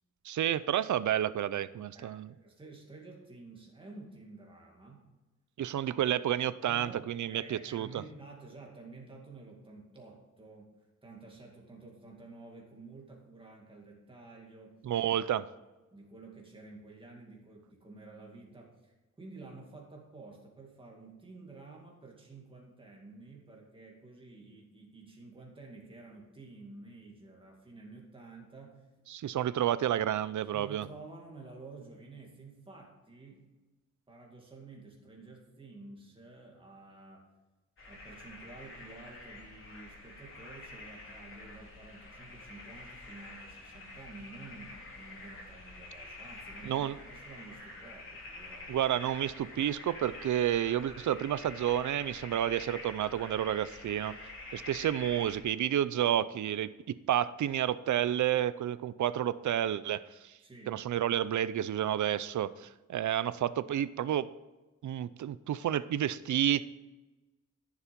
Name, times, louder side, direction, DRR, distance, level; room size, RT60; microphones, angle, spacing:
voice 1, 0.2-2.3 5.6-8.0 14.8-15.5 29.1-30.9 46.6-47.0 48.7-54.1 54.5-60.3 60.7-64.3 64.8-66.6, right 11 dB, 75° right, 16 dB, 0.6 m, -30 dB
voice 2, 1.9-5.1 6.7-10.7 11.0-14.8 15.9-28.9 30.5-33.5 34.1-37.3 37.9-48.7 60.4-60.8, right 3 dB, 15° right, -1 dB, 2.3 m, -51 dB
sound 1, 37.8-55.4, left 2 dB, 40° left, 3.4 m, -47 dB
14.5 x 7.3 x 5.3 m, 1.1 s
wide cardioid pair, 175°, 30 cm